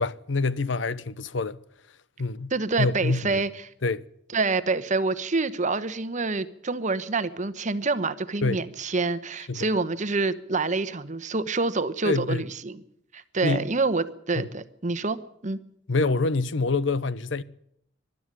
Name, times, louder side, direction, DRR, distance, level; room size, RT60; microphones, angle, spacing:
voice 1, 0.0-1.6 2.2-2.5 2.8-3.3 3.8-4.0 8.4-8.6 9.5-9.7 12.0-12.4 13.4-13.6 14.4-14.5 15.9-17.4, left 3 dB, 85° left, 0.8 m, -26 dB
voice 2, 2.5-3.7 4.3-12.8 13.1-15.6, right 3 dB, 40° right, 1.1 m, -27 dB
21.5 x 12.0 x 9.8 m
head